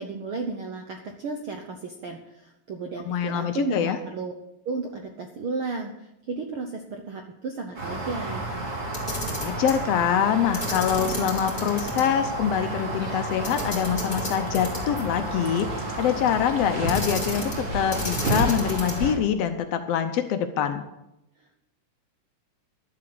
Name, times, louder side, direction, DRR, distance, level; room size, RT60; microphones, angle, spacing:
voice 1, 0.0-4.3 4.6-8.4 21.4-21.6, right 4 dB, 75° right, 4 dB, 1.2 m, -33 dB
voice 2, 3.1-4.0 9.4-20.8, left 9 dB, 75° left, 8 dB, 1.5 m, -25 dB
sound 1, 7.8-19.1, right 2 dB, 45° right, 4.0 m, -31 dB
Camera, 8.9-9.8 10.5-12.0 12.4-12.5 13.4-15.0 16.9-17.6 17.9-19.1, left 1 dB, 15° left, 2.9 m, -32 dB
sound 2, 12.5-16.8, equal, 20° right, 1.1 m, -45 dB
12.0 x 7.6 x 7.7 m, 0.88 s
omnidirectional pair, 3.7 m